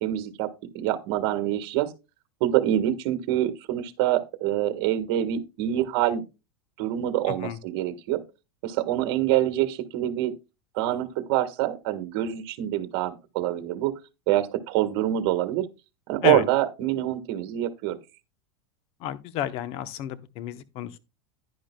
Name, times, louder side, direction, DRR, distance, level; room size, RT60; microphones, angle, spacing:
voice 1, 0.0-0.5 0.7-1.9 2.4-6.2 6.8-8.2 8.6-10.3 10.7-13.9 14.3-15.6 16.1-18.0, right 13 dB, 60° right, 1.5 m, -25 dB
voice 2, 7.3-7.6 16.2-16.4 19.0-21.0, left 11 dB, 50° left, 0.9 m, -31 dB
10.5 x 10.5 x 2.3 m
supercardioid pair, 125°, 13 cm